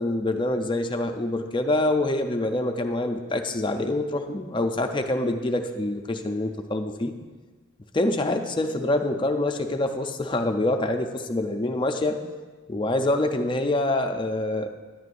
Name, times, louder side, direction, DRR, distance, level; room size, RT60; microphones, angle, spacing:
voice 1, 0.0-7.1 7.9-12.2 12.7-14.7, left 2 dB, 25° left, 6 dB, 0.4 m, -26 dB
10.5 x 9.5 x 2.5 m, 1.3 s
head